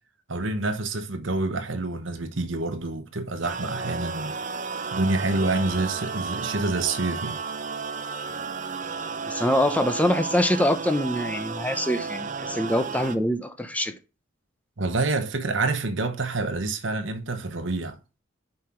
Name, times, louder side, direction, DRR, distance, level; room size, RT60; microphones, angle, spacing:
voice 1, 0.3-4.4 4.9-7.4 14.8-18.0, right 2 dB, 75° right, 1.1 m, -27 dB
sound 1, 3.4-13.2, right 5 dB, 40° right, 0.7 m, -33 dB
voice 2, 9.3-13.9, left 1 dB, 10° left, 0.7 m, -24 dB
5.7 x 4.9 x 5.7 m
head